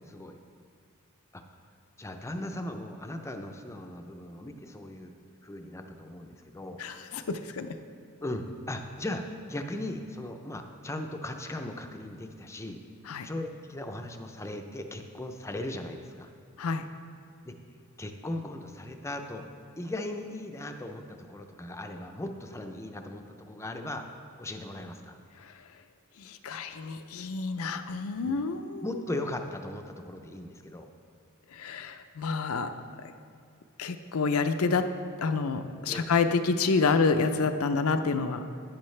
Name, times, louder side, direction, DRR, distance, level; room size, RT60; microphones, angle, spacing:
voice 1, 0.1-0.4 1.3-1.4 2.0-5.1 5.4-6.8 8.2-12.8 13.2-16.3 17.5-17.6 18.0-19.5 19.8-24.0 24.4-25.2 28.2-28.4 28.8-30.9 35.9-36.1, left 1 dB, 15° left, 5 dB, 0.5 m, -38 dB
voice 2, 6.8-7.7 13.1-13.3 16.6-16.8 25.4-25.5 26.2-28.9 31.5-33.1 33.8-34.9 35.2-38.4, left 4 dB, 75° left, 9 dB, 0.5 m, -28 dB
10.0 x 9.9 x 3.2 m, 2.3 s
head